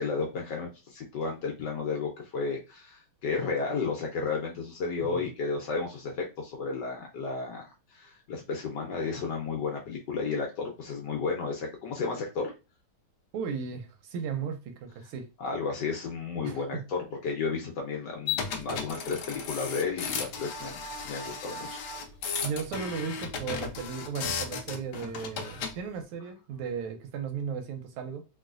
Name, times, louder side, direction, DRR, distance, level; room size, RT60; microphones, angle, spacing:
voice 1, 0.0-12.5 15.4-21.8, left 4 dB, 65° left, 1.1 m, -33 dB
voice 2, 13.3-15.3 16.4-16.8 22.4-28.2, right 6 dB, 85° right, 1.5 m, -36 dB
sound 1, 18.3-25.8, left 5 dB, 90° left, 0.9 m, -35 dB
3.1 x 3.0 x 2.4 m
omnidirectional pair, 2.4 m